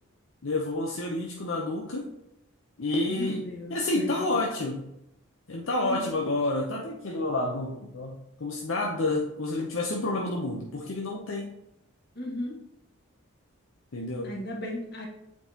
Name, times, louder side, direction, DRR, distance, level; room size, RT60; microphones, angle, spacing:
voice 1, 0.4-2.1 2.8-4.9 5.5-11.5 13.9-14.4, left 2 dB, 70° left, -1 dB, 0.8 m, -29 dB
voice 2, 3.1-4.1 5.8-6.1 12.1-12.5 14.2-15.1, left 1 dB, 50° left, -1 dB, 1.6 m, -35 dB
8.3 x 4.6 x 2.9 m, 0.83 s
head